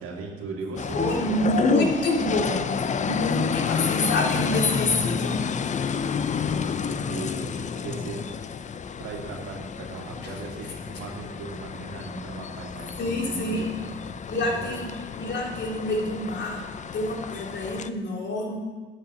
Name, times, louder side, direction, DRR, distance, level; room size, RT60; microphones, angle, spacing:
voice 1, 0.0-1.8 5.8-8.3 9.0-14.8, right 3 dB, 90° right, -1 dB, 2.4 m, -38 dB
sound 1, 0.8-17.9, left 6 dB, 35° left, 0.6 m, -30 dB
voice 2, 0.9-5.4 10.2-10.3 13.0-13.7 14.3-14.9 15.2-16.6 16.9-18.6, left 1 dB, 60° left, -1 dB, 3.1 m, -27 dB
10.5 x 7.3 x 7.8 m, 1.4 s
cardioid pair, 90°, 21 cm